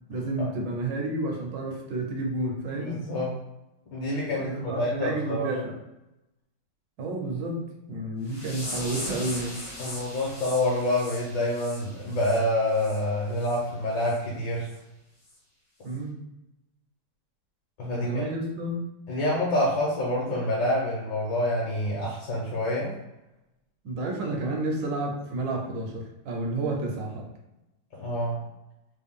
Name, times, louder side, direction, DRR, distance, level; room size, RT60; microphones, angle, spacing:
voice 1, 0.1-3.0 4.4-5.8 7.0-9.6 15.8-16.2 17.9-18.9 23.8-27.3, right 2 dB, 70° right, 1 dB, 1.4 m, -31 dB
voice 2, 2.9-3.3 3.9-5.5 9.8-14.7 17.8-18.2 19.1-22.9 28.0-28.4, left 1 dB, 70° left, -5 dB, 1.5 m, -27 dB
sound 1, 8.3-13.0 13.4-13.6 14.0-14.2 14.6-14.8 15.3-15.4, left 1 dB, 40° left, 0.7 m, -39 dB
3.8 x 2.2 x 3.5 m, 0.95 s
omnidirectional pair, 2.1 m